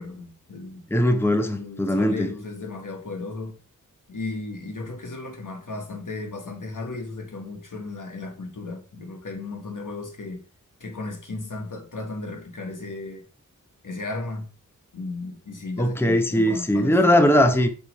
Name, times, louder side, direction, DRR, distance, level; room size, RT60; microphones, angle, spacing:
voice 1, 0.0-0.8 1.6-3.6 4.1-10.4 10.8-13.2 13.8-14.5 14.9-17.3, left 3 dB, 65° left, 1.5 m, -35 dB
voice 2, 0.9-2.3 15.8-17.7, equal, 5° left, 0.8 m, -20 dB
6.9 x 3.1 x 5.2 m
wide cardioid pair, 50°, 33 cm